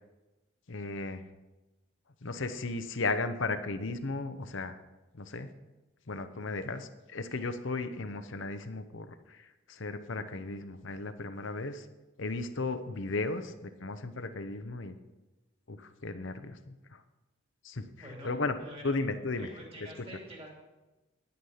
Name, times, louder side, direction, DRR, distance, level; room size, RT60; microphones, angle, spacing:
voice 1, 0.7-1.2 2.2-4.8 5.1-5.5 6.1-11.9 12.2-15.0 15.7-17.0 17.6-18.5 18.8-19.5, left 3 dB, 65° left, 9 dB, 0.8 m, -35 dB
voice 2, 18.0-18.3 18.6-19.0 19.4-20.5, right 1 dB, 25° right, -1 dB, 2.8 m, -46 dB
10.0 x 9.5 x 5.7 m, 1.1 s
head